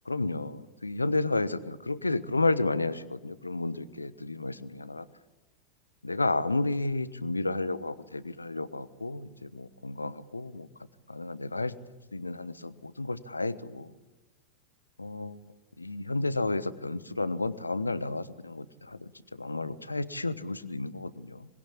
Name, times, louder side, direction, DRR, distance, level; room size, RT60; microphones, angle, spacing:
voice 1, 0.1-5.1 6.0-10.7 11.1-11.7 12.1-13.9 15.0-15.4 15.8-21.5, left 2 dB, 80° left, 16 dB, 1.1 m, -32 dB
25.5 x 21.0 x 8.6 m, 1.1 s
figure-of-eight pair, 90°, 0 cm